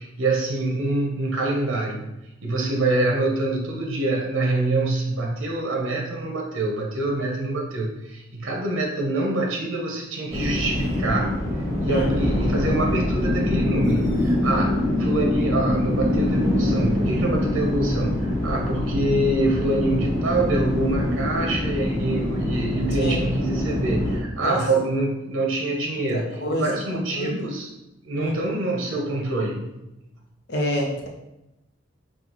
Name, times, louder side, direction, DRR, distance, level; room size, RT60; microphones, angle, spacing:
voice 1, 0.0-2.1 2.4-11.4 11.8-27.7 28.0-29.7, right 2 dB, 80° right, 0 dB, 0.8 m, -25 dB
sound 1, 10.3-24.2, left 1 dB, 15° right, 1.0 m, -24 dB
voice 2, 26.1-27.3 28.1-28.3 30.5-31.1, equal, 55° left, -1 dB, 0.7 m, -27 dB
6.1 x 2.4 x 2.9 m, 0.93 s
head